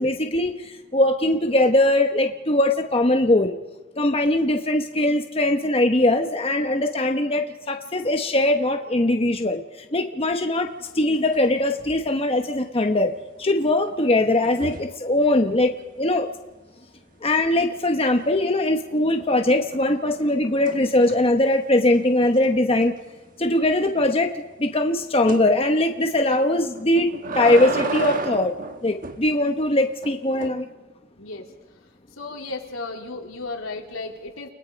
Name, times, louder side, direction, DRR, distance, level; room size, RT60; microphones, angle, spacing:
voice 1, 0.0-3.5 4.0-9.6 9.9-10.7 10.9-13.1 13.4-16.3 17.2-22.9 23.4-24.3 24.6-27.1 27.3-28.5 28.8-30.7, left 1 dB, 30° left, 4 dB, 1.0 m, -21 dB
sound 1, 10.9-11.5 11.7-12.1 14.4-15.0 18.1-18.6 19.0-21.4 21.9-22.0 22.3-22.4 22.8-22.9 25.3-25.5 26.7-29.2 30.0-30.5, right 3 dB, 45° right, 1.2 m, -33 dB
voice 2, 31.2-31.5 32.2-34.5, left 3 dB, 85° left, 1 dB, 3.2 m, -34 dB
30.0 x 19.5 x 5.2 m, 1.2 s
head